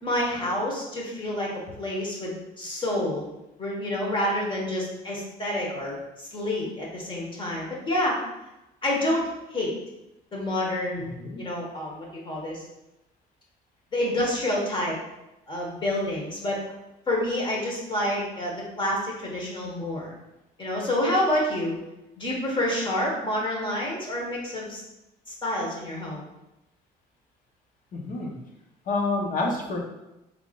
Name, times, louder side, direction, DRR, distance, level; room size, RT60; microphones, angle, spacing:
voice 1, 0.0-3.2 3.6-8.2 8.8-9.2 9.5-9.7 10.3-12.6 13.9-15.0 15.5-16.6 17.1-20.1 20.6-21.7 22.2-24.8 25.4-26.2, left 1 dB, 30° left, -2 dB, 1.5 m, -28 dB
voice 2, 27.9-28.3 28.9-29.8, left 3 dB, 55° left, 0 dB, 1.0 m, -28 dB
5.0 x 3.5 x 2.5 m, 0.94 s
cardioid pair, 110°, 17 cm